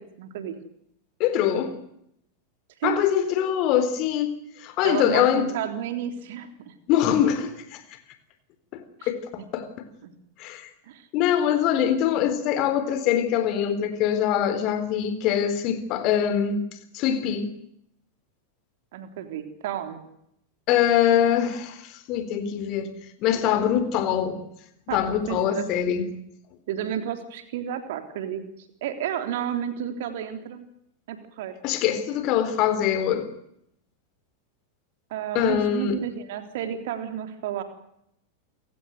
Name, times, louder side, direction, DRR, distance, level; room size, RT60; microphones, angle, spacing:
voice 1, 0.2-0.5 2.8-3.0 4.8-6.7 9.0-9.1 9.4-9.5 10.0-10.1 10.9-11.1 18.9-20.0 24.9-25.0 25.3-25.7 26.7-28.4 28.8-30.6 31.1-31.5 35.1-37.6, right 10 dB, 55° right, 3.6 m, -31 dB
voice 2, 1.2-1.8 2.8-4.3 4.6-5.5 6.9-7.8 8.7-9.7 10.4-10.7 11.1-16.6 16.9-17.5 20.7-22.9 23.2-24.4 24.9-26.1 31.6-33.3 35.3-36.0, left 9 dB, 40° left, 3.9 m, -23 dB
28.5 x 16.5 x 9.4 m
figure-of-eight pair, 90°, 0 cm